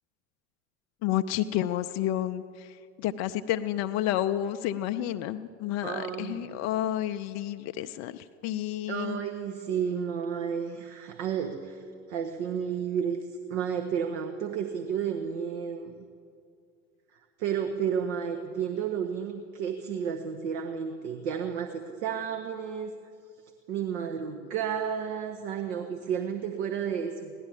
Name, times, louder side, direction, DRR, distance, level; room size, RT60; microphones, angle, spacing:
voice 1, 1.0-9.2, left 12 dB, 45° left, 10 dB, 0.6 m, -30 dB
voice 2, 5.8-6.6 8.9-11.8 12.1-15.9 17.4-22.9 23.7-27.3, right 7 dB, 60° right, 5 dB, 1.1 m, -32 dB
16.5 x 11.5 x 7.4 m, 2.3 s
figure-of-eight pair, 70°, 38 cm